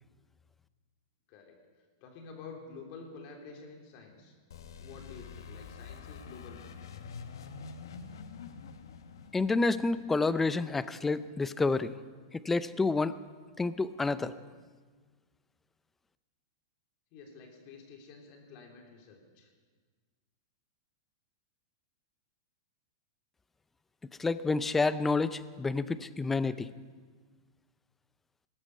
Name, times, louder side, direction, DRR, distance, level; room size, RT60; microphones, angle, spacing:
voice 1, 2.0-4.4 4.8-6.7 17.1-19.5, left 4 dB, 45° left, 2 dB, 3.4 m, -49 dB
sound 1, 4.5-11.1, left 6 dB, 85° left, 1.2 m, -47 dB
voice 2, 9.3-11.9 12.4-13.2 13.6-14.4 24.2-26.7, left 3 dB, 10° left, 15 dB, 0.5 m, -29 dB
20.5 x 12.0 x 5.6 m, 1.5 s
supercardioid pair, 140°, 2 cm